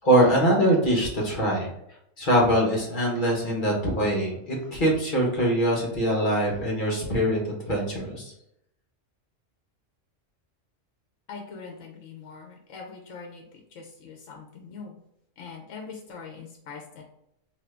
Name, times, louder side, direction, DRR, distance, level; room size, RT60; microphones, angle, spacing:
voice 1, 0.0-1.7 2.2-8.3, right 1 dB, 45° left, -2 dB, 1.1 m, -23 dB
voice 2, 11.3-13.4 13.7-15.0 15.4-17.0, left 5 dB, 70° left, 1 dB, 1.0 m, -42 dB
2.9 x 2.6 x 3.3 m, 0.78 s
omnidirectional pair, 1.3 m